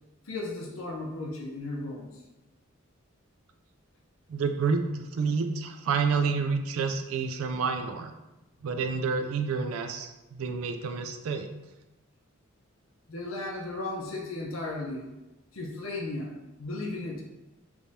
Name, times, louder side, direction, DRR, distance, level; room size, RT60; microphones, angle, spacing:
voice 1, 0.3-2.1 13.1-15.1 15.5-17.2, left 2 dB, 75° left, -1 dB, 0.7 m, -35 dB
voice 2, 4.3-8.1 8.6-11.5, right 5 dB, 80° right, 6 dB, 0.3 m, -29 dB
3.4 x 3.1 x 2.7 m, 1.0 s
head